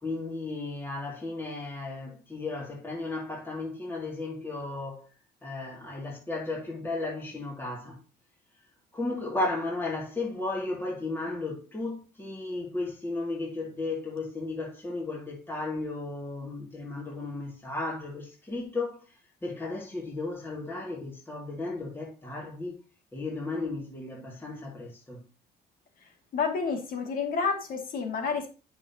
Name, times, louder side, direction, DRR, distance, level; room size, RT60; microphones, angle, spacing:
voice 1, 0.0-5.1 5.4-8.0 8.9-22.8 23.1-25.2, left 2 dB, 15° left, 2.5 m, -34 dB
voice 2, 26.3-28.5, left 5 dB, 55° left, 2.4 m, -29 dB
9.6 x 5.9 x 2.9 m
cardioid pair, 110°, 17 cm